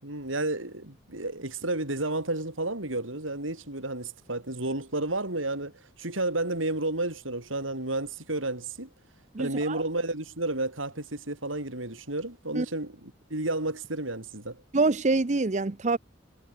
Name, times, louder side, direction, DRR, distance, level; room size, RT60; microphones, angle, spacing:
voice 1, 0.0-5.7 6.0-8.9 9.4-14.6, right 2 dB, 90° right, 6.8 m, -31 dB
voice 2, 9.3-9.8 12.6-12.7 14.7-16.0, right 3 dB, 35° right, 0.7 m, -25 dB
head